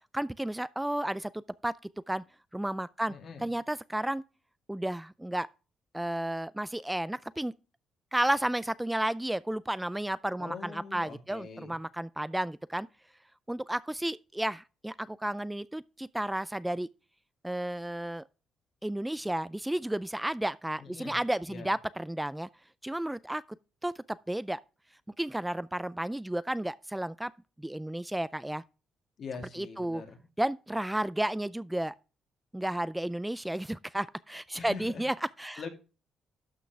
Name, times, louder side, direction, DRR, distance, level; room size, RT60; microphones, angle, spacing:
voice 1, 0.1-1.3 1.6-1.7 2.1-2.2 2.5-4.2 4.7-5.5 5.9-7.5 8.1-12.9 13.5-16.9 17.4-18.2 18.8-22.5 22.8-23.4 23.8-24.6 25.2-27.3 27.6-28.6 29.5-30.0 30.4-32.0 32.5-35.6, right 1 dB, 5° right, 0.4 m, -32 dB
voice 2, 3.1-3.5 10.4-11.8 20.8-21.2 21.5-21.7 29.2-30.2 34.6-35.0 35.6-35.7, left 5 dB, 60° left, 2.8 m, -43 dB
12.0 x 6.0 x 3.3 m
cardioid pair, 90°, 0 cm